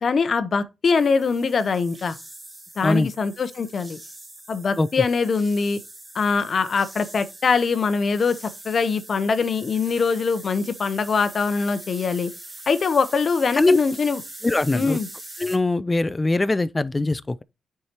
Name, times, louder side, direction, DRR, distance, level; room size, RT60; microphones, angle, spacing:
voice 1, 0.0-2.2 2.8-4.0 4.5-5.8 6.1-8.4 8.6-12.3 12.7-14.2 14.7-15.1, left 5 dB, 50° left, 0.7 m, -22 dB
sound 1, 0.9-15.6, right 1 dB, 20° right, 1.5 m, -42 dB
voice 2, 14.4-15.0 15.4-17.4, left 2 dB, 20° left, 0.3 m, -21 dB
9.3 x 4.7 x 2.9 m
cardioid pair, 95°, 0 cm